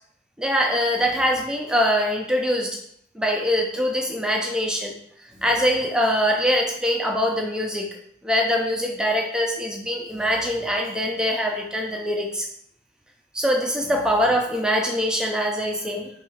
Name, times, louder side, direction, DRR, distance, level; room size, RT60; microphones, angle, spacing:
voice 1, 0.4-2.8 3.1-4.9 5.4-7.9 8.2-12.5 13.3-16.1, equal, 5° right, 0 dB, 0.4 m, -23 dB
3.5 x 2.3 x 4.5 m, 0.69 s
head